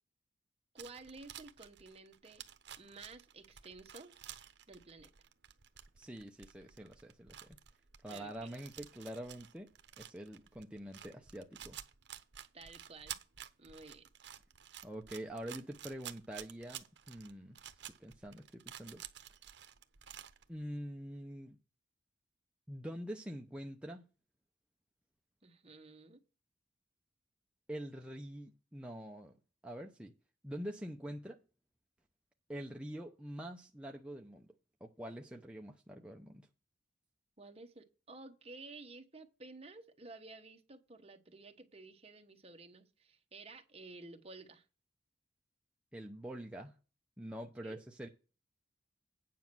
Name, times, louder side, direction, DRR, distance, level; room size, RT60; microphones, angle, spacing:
voice 1, 0.7-2.4 2.8-4.2 4.7-5.1 8.1-8.5 12.5-13.2 13.6-14.1 25.4-26.2 37.4-44.7 47.6-47.8, right 3 dB, 35° right, 1.2 m, -53 dB
sound 1, 0.8-20.5, right 10 dB, 70° right, 0.9 m, -52 dB
voice 2, 6.0-7.6 8.0-9.7 10.0-11.8 14.8-17.6 18.0-19.0 20.5-21.6 22.7-24.0 27.7-29.4 29.6-30.1 30.4-31.4 32.5-34.5 34.8-36.5 45.9-46.7 47.2-48.1, equal, 5° right, 0.7 m, -45 dB
9.3 x 5.3 x 6.0 m
head